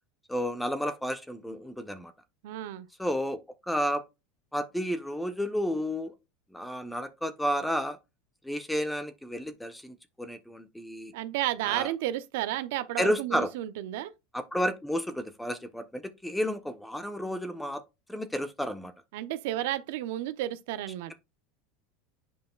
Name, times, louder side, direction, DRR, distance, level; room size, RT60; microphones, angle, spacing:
voice 1, 0.3-2.1 3.0-3.4 3.7-4.0 4.5-6.1 6.5-8.0 8.4-11.1 11.6-11.9 13.0-13.5 14.3-17.8 18.1-18.9, equal, 5° left, 1.0 m, -31 dB
voice 2, 2.4-2.9 11.1-14.1 19.1-21.1, right 14 dB, 70° right, 0.8 m, -32 dB
8.1 x 5.2 x 2.4 m
hypercardioid pair, 90°, 0 cm